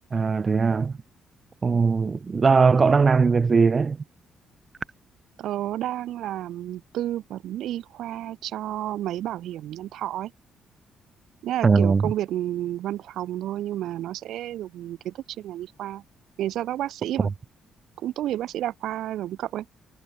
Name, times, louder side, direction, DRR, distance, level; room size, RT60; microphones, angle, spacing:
voice 1, 0.1-1.0 1.6-4.0 11.6-12.1 17.2-17.3, right 5 dB, 35° right, 0.4 m, -20 dB
voice 2, 5.4-10.3 11.4-16.0 16.4-17.3 18.0-19.6, right 13 dB, 80° right, 1.0 m, -31 dB
cardioid pair, 90°, 0 cm